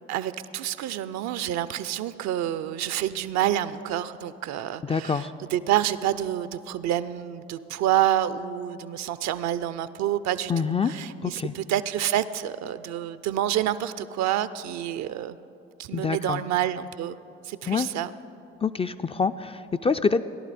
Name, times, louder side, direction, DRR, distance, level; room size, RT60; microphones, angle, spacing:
voice 1, 0.1-15.4 15.8-17.2 17.4-18.1, right 12 dB, 60° right, 15 dB, 0.5 m, -28 dB
voice 2, 4.8-5.3 10.5-10.9 11.2-11.5 15.9-16.4 17.7-17.9 18.6-20.2, left 5 dB, 20° left, 10 dB, 0.3 m, -26 dB
17.0 x 11.0 x 4.2 m, 2.7 s
hypercardioid pair, 50°, 31 cm